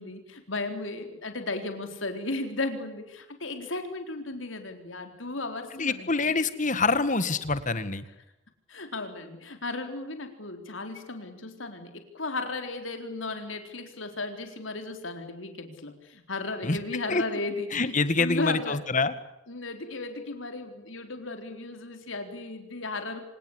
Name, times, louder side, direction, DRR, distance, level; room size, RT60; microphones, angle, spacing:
voice 1, 0.0-6.4 8.7-18.8 19.5-23.2, left 2 dB, 80° left, 6 dB, 4.0 m, -35 dB
voice 2, 5.8-8.0 16.6-16.8 17.1-17.2 17.7-19.1, left 3 dB, 40° left, 13 dB, 1.9 m, -26 dB
27.0 x 18.5 x 9.9 m, 0.87 s
head